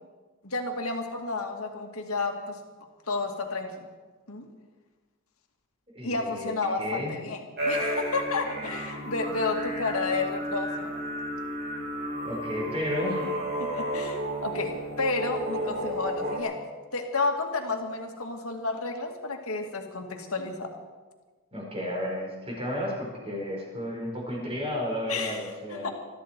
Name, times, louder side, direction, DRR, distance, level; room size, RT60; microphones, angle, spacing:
voice 1, 0.4-2.6 3.1-3.7 4.3-4.5 6.0-10.9 13.6-16.6 16.9-20.7 25.1-25.4 25.7-25.9, left 3 dB, 80° left, 3 dB, 2.2 m, -31 dB
voice 2, 5.9-6.5 6.8-7.1 12.2-13.3 21.5-25.9, left 1 dB, 25° right, -2 dB, 4.9 m, -32 dB
sound 1, 7.6-16.4, equal, 50° right, 5.6 m, -32 dB
22.0 x 13.5 x 4.5 m, 1.3 s
head